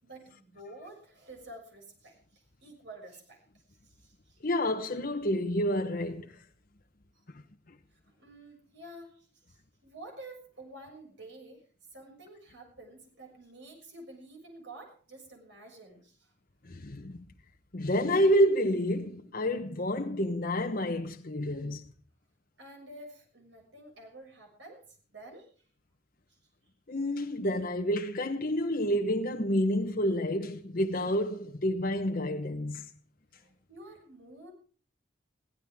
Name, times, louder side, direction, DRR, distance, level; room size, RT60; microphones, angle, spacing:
voice 1, 0.0-4.4 7.1-7.2 7.9-16.3 22.6-25.7 26.3-26.4 33.3-34.5, right 1 dB, 75° right, 6.6 m, -50 dB
voice 2, 4.4-6.3 16.7-17.2 17.7-21.8 26.9-32.8, equal, 50° left, 1.1 m, -29 dB
23.0 x 16.0 x 3.6 m
head